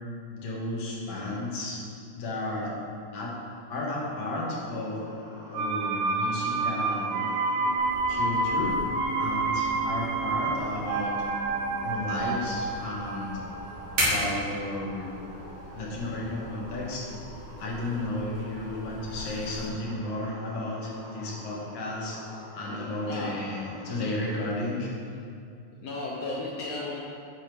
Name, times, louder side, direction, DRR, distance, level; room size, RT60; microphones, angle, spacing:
voice 1, 0.3-1.8 2.1-2.7 3.1-3.3 3.7-5.0 5.5-7.3 8.1-8.8 9.2-11.1 11.8-13.4 14.0-15.1 15.7-17.1 17.6-22.2 22.5-24.9, left 2 dB, 60° left, -4 dB, 2.4 m, -33 dB
sound 1, 4.6-24.3, equal, 25° left, 1.9 m, -46 dB
sound 2, 5.5-15.3 15.6-15.7, right 3 dB, 80° right, 2.2 m, -29 dB
sound 3, 7.8-19.7, right 1 dB, 45° right, 3.2 m, -38 dB
voice 2, 22.6-23.4 25.8-27.0, left 2 dB, 80° left, -4 dB, 1.4 m, -35 dB
12.0 x 4.3 x 4.7 m, 2.4 s
omnidirectional pair, 4.1 m